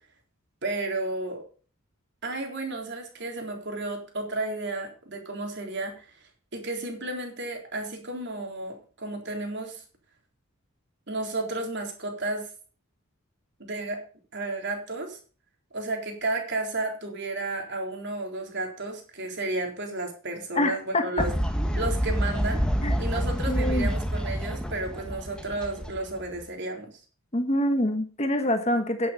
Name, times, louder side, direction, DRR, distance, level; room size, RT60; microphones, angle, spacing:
voice 1, 0.6-1.4 2.2-6.2 6.5-9.8 11.1-12.5 13.6-14.0 14.3-15.2 15.7-21.3 21.7-22.6 23.0-27.0, right 2 dB, 50° right, 2 dB, 3.9 m, -32 dB
voice 2, 20.5-21.3 22.8-22.9 23.5-23.9 27.3-29.1, left 1 dB, 30° left, 7 dB, 1.4 m, -25 dB
Fowl, 21.2-26.5, equal, 5° left, 1.3 m, -28 dB
10.5 x 9.4 x 5.4 m, 0.39 s
head